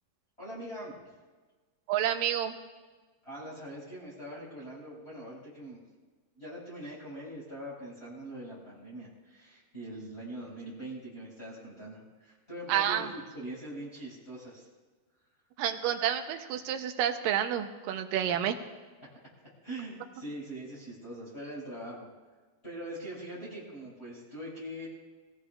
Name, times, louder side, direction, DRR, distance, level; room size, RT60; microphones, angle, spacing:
voice 1, 0.4-0.9 3.2-5.8 6.4-14.7 19.6-22.1 22.6-24.9, right 1 dB, 15° left, -9 dB, 5.9 m, -42 dB
voice 2, 1.9-2.6 12.7-13.1 15.6-18.6, right 10 dB, 75° right, 7 dB, 2.4 m, -29 dB
25.5 x 17.0 x 2.4 m, 1.3 s
omnidirectional pair, 4.2 m